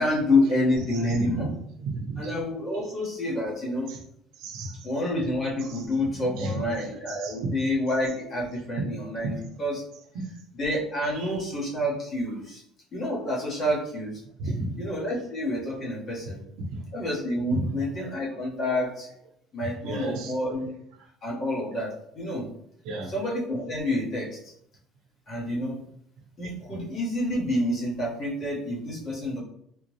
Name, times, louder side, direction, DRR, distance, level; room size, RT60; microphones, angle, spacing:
voice 1, 0.0-1.5 2.2-3.9 4.8-9.8 10.5-12.6 12.9-14.1 14.8-16.4 16.9-19.1 19.5-20.7 21.2-22.5 23.1-24.4 25.3-25.8 26.4-29.4, left 1 dB, 40° left, -5 dB, 1.4 m, -28 dB
voice 2, 0.9-1.5 1.8-2.3 3.9-4.0 4.4-4.9 5.6-7.5 9.2-9.4 10.1-10.3 11.2-11.4 14.4-14.8 16.6-16.8 17.5-17.8 19.6-20.3 22.8-23.1, right 2 dB, 75° right, 3 dB, 0.7 m, -33 dB
3.6 x 2.5 x 3.2 m, 0.71 s
cardioid pair, 140°, 0 cm